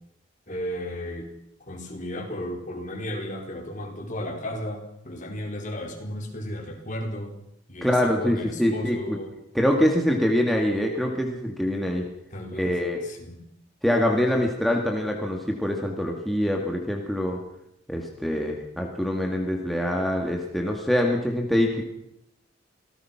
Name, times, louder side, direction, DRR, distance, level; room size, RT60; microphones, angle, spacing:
voice 1, 0.5-1.3 1.7-7.3 7.7-9.3 12.3-13.4, equal, 40° left, 2 dB, 4.8 m, -34 dB
voice 2, 7.8-9.2 9.5-12.0 12.6-13.0 13.8-17.4 17.9-21.8, left 1 dB, ahead, 0 dB, 2.2 m, -24 dB
26.5 x 18.0 x 6.0 m, 0.79 s
head